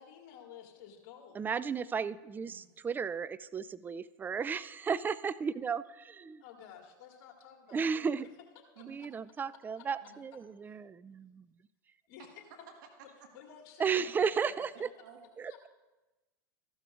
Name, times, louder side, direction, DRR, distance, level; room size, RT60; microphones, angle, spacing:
voice 1, 0.0-1.5 6.4-8.1 8.8-9.1 9.5-9.8 10.6-10.8 12.1-12.3 13.3-14.2 14.5-14.7 15.5-15.7, left 8 dB, 55° left, 2 dB, 1.9 m, -53 dB
voice 2, 1.3-6.4 7.7-8.3 8.9-11.5 13.8-14.9 15.4-15.7, right 6 dB, 15° right, 16 dB, 0.4 m, -34 dB
voice 3, 12.2-13.3 13.9-14.1 15.0-15.2, right 7 dB, 65° right, 2 dB, 1.6 m, -54 dB
14.5 x 12.5 x 2.5 m, 1.1 s
hypercardioid pair, 95°, 11 cm